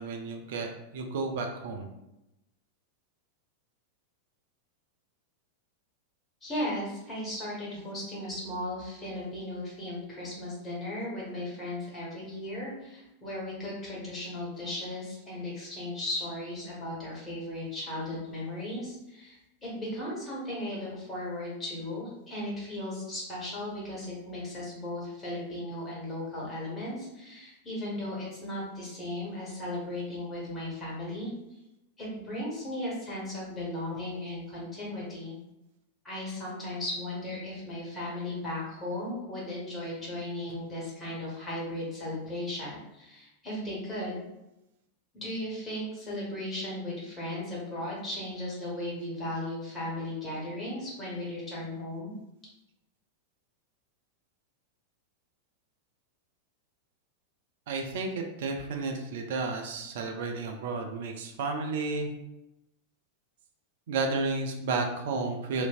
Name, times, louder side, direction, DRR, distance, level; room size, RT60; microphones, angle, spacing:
voice 1, 0.0-1.9 57.7-62.1 63.9-65.7, right 3 dB, 55° right, 3 dB, 0.4 m, -32 dB
voice 2, 6.4-31.3 32.0-35.4 36.0-44.2 45.1-52.1, left 1 dB, 20° left, -6 dB, 1.4 m, -36 dB
3.1 x 2.5 x 2.4 m, 0.89 s
figure-of-eight pair, 90°, 0 cm